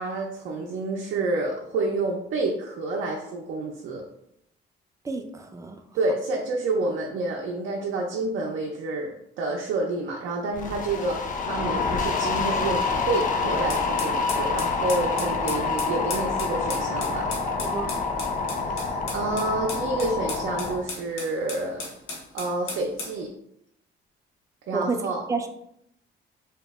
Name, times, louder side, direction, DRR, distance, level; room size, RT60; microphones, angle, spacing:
voice 1, 0.0-4.0 5.9-17.3 18.6-21.8 22.3-23.3 24.7-25.2, right 2 dB, 75° right, -1 dB, 0.5 m, -29 dB
voice 2, 5.0-5.8 11.0-11.1 17.7-17.9 24.7-25.0 25.3-25.6, right 4 dB, 15° right, 6 dB, 0.4 m, -30 dB
sound 1, 10.5-20.8, left 4 dB, 40° left, 0.5 m, -27 dB
sound 2, 13.7-23.2, left 3 dB, 85° left, 0.8 m, -36 dB
2.8 x 2.0 x 3.4 m, 0.76 s
cardioid pair, 90°, 20 cm